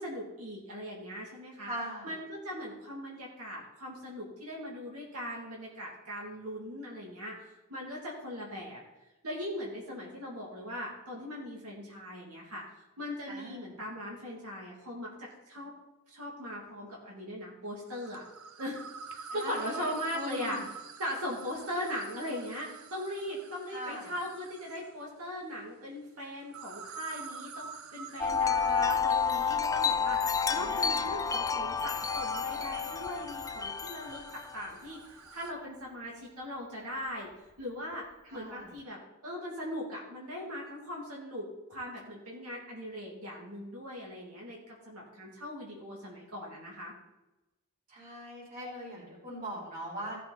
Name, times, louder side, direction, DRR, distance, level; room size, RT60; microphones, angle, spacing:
voice 1, 0.0-1.7 2.0-8.8 9.2-15.7 16.1-18.2 18.6-20.6 21.0-34.2 34.5-35.0 35.3-37.3 37.6-38.0 38.3-39.0 39.2-46.9, equal, 85° right, -3 dB, 2.6 m, -39 dB
voice 2, 1.6-2.1 13.3-13.8 19.3-20.6 23.7-24.1 30.5-31.0 38.2-38.7 47.9-50.2, equal, 40° right, -5 dB, 4.0 m, -41 dB
sound 1, 17.9-25.0 26.4-35.5, right 5 dB, 70° right, 0.8 m, -47 dB
Wind chime, 28.2-34.7, left 6 dB, 15° left, 0.3 m, -30 dB
15.5 x 6.6 x 4.1 m, 1.0 s
head